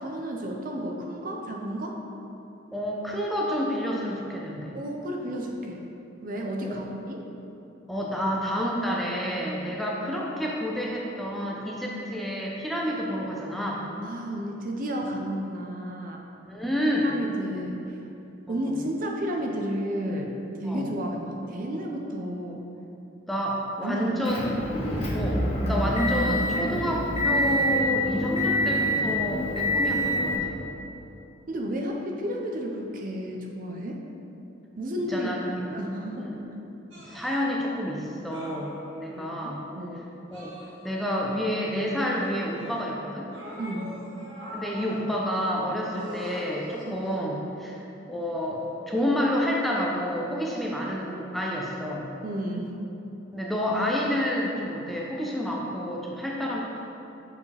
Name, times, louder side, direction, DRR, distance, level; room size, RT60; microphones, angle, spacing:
voice 1, 0.0-2.0 4.7-5.8 6.2-7.2 14.0-16.2 17.0-18.0 18.5-20.3 20.6-22.6 23.8-24.1 25.7-25.9 31.5-34.0 34.8-35.3 35.6-36.3 39.1-40.0 43.6-43.9 46.9-47.0 52.2-52.8, equal, 45° right, 1 dB, 0.5 m, -32 dB
voice 2, 2.7-4.7 6.6-6.7 7.9-13.8 16.4-17.1 17.5-17.6 18.5-18.6 20.6-20.9 23.3-24.5 25.1-30.6 35.1-35.4 36.2-36.4 36.9-39.6 40.3-40.6 40.8-43.3 44.5-52.1 53.3-56.8, equal, ahead, -4 dB, 0.5 m, -29 dB
Motor vehicle (road) / Engine, 24.3-30.4, equal, 30° left, 0.9 m, -26 dB
sound 1, 36.9-37.3 38.3-39.2 40.3-41.2 42.0-42.9 43.3-45.1 45.9-47.4 48.5-48.7, equal, 75° right, 1.2 m, -42 dB
6.9 x 4.8 x 3.3 m, 2.9 s
head